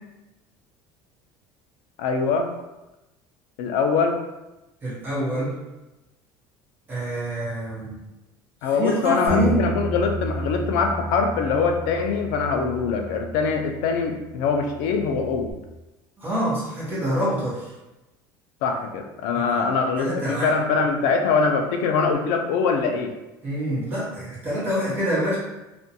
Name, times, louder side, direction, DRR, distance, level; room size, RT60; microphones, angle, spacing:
voice 1, 2.0-2.5 3.6-4.2 8.6-15.5 18.6-23.1, left 5 dB, 85° left, 4 dB, 0.4 m, -23 dB
voice 2, 4.8-5.6 6.9-8.0 8.6-9.7 16.2-17.7 19.3-19.7 19.9-20.5 23.4-25.4, right 1 dB, 20° right, -9 dB, 0.9 m, -26 dB
Bass guitar, 9.3-15.5, right 1 dB, 55° left, 1.0 m, -33 dB
2.5 x 2.2 x 2.7 m, 1.0 s
cardioid pair, 175°, 9 cm